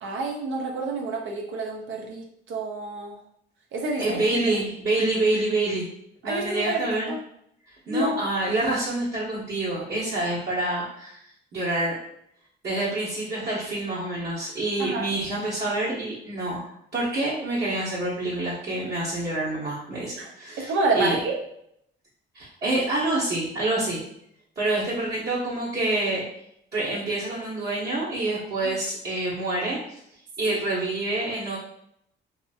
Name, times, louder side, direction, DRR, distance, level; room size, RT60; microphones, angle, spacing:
voice 1, 0.0-3.2 3.7-4.2 6.2-7.2 7.9-8.2 14.8-15.1 20.2-20.3 20.6-21.3 28.6-28.7 30.5-30.6, right 2 dB, 75° right, 0 dB, 0.7 m, -28 dB
voice 2, 4.0-5.9 6.2-7.1 7.9-11.2 11.5-11.9 12.6-21.2 22.3-24.0 24.6-26.3 26.7-29.8 30.4-31.6, right 2 dB, 55° right, -10 dB, 1.0 m, -27 dB
2.8 x 2.6 x 2.4 m, 0.73 s
cardioid pair, 90°, 20 cm